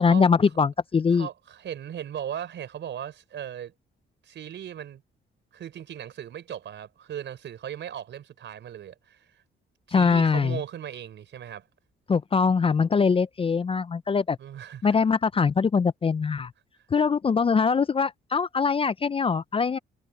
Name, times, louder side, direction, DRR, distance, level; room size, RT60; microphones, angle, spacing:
voice 1, 0.0-1.3 9.9-10.6 12.1-14.4 14.8-16.5 16.9-19.8, left 5 dB, 30° left, 0.5 m, -22 dB
voice 2, 1.1-3.7 4.2-5.0 5.5-9.4 9.9-11.7 14.4-15.0 16.9-17.1, right 10 dB, 65° right, 5.1 m, -38 dB
cardioid pair, 90°, 20 cm